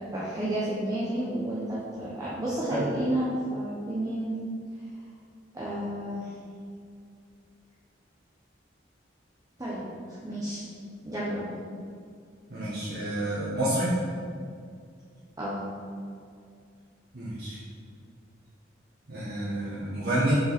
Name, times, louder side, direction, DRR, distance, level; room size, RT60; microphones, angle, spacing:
voice 1, 0.1-4.4 5.5-6.3 9.6-10.6 11.0-11.5 15.4-15.7, right 1 dB, 20° right, -8 dB, 0.9 m, -31 dB
voice 2, 12.5-13.9 17.1-17.6 19.1-20.4, right 1 dB, 60° right, -11 dB, 1.6 m, -28 dB
6.8 x 5.5 x 4.2 m, 2.2 s
head